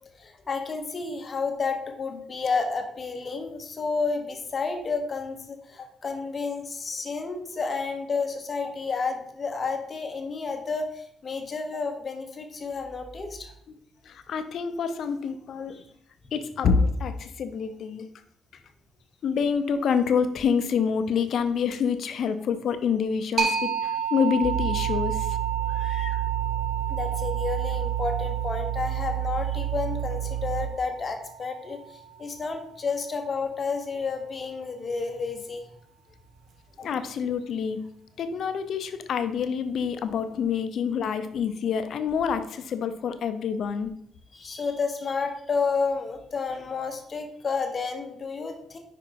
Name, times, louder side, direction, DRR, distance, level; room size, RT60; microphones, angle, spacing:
voice 1, 0.0-13.5 15.7-15.8 25.8-26.1 26.9-35.6 36.8-36.9 44.3-48.8, left 4 dB, 40° left, 5 dB, 1.0 m, -31 dB
voice 2, 14.1-15.8 16.3-18.1 19.2-25.4 25.7-26.2 36.8-37.8 38.2-43.9, left 6 dB, 65° left, 10 dB, 0.6 m, -27 dB
sound 1, 23.4-32.8, right 6 dB, 55° right, 1.1 m, -32 dB
sound 2, 24.4-30.7, right 12 dB, 25° right, 0.7 m, -29 dB
5.2 x 4.9 x 4.6 m, 0.69 s
cardioid pair, 90°, 0 cm